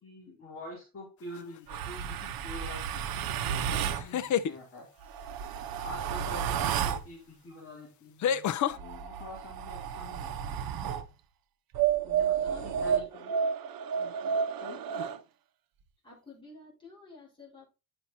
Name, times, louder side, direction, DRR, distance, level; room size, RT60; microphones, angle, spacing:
voice 1, 0.0-4.9 5.8-8.5 8.7-10.6 12.0-13.4 14.6-14.8, left 1 dB, 35° left, -3 dB, 3.3 m, -46 dB
sound 1, 1.3-1.8 3.9-4.5 6.8-6.9 8.2-8.8, left 9 dB, 50° left, 0.5 m, -28 dB
sound 2, 1.7-4.1 5.0-7.1 8.7-11.1 11.7-15.2, right 8 dB, 70° right, 0.8 m, -31 dB
voice 2, 16.0-17.6, left 3 dB, 15° left, -6 dB, 4.2 m, -51 dB
9.8 x 5.9 x 2.7 m, 0.29 s
cardioid pair, 170°, 37 cm